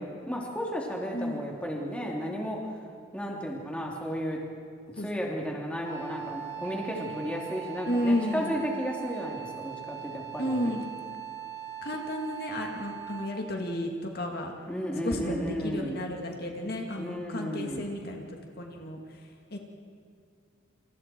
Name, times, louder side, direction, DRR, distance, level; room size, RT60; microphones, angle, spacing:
voice 1, 0.0-2.7 3.1-4.4 5.0-10.7 14.7-16.0 17.0-17.8, equal, 5° left, -2 dB, 3.2 m, -33 dB
Wind instrument woodwind instrument, 5.8-13.5, right 10 dB, 30° right, 4.1 m, -40 dB
voice 2, 7.9-8.6 10.4-10.9 11.8-14.5 15.0-18.3 18.6-19.0 19.5-19.6, left 1 dB, 50° left, 1 dB, 2.3 m, -32 dB
29.0 x 27.5 x 4.6 m, 2.4 s
head